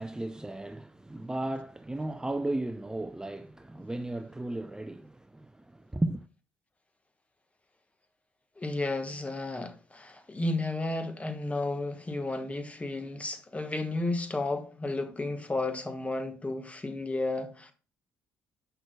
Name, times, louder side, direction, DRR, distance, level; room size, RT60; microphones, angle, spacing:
voice 1, 0.0-6.3, right 1 dB, 10° right, 0.4 m, -35 dB
voice 2, 8.6-17.7, left 2 dB, 20° left, 1.3 m, -33 dB
7.9 x 6.0 x 2.3 m
supercardioid pair, 60°, 7 cm